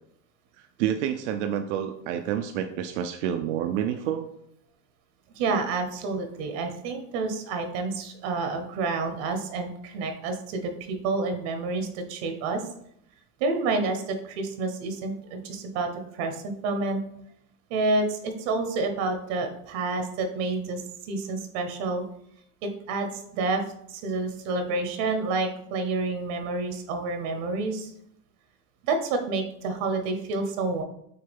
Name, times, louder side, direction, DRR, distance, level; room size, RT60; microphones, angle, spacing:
voice 1, 0.8-4.3, right 10 dB, 85° right, 6 dB, 0.5 m, -28 dB
voice 2, 5.3-12.6 13.4-17.0 17.7-22.0 22.6-23.6 23.9-27.9 28.8-30.8, right 3 dB, 65° right, 6 dB, 0.8 m, -29 dB
6.6 x 2.2 x 3.4 m, 0.74 s
supercardioid pair, 135°, 35 cm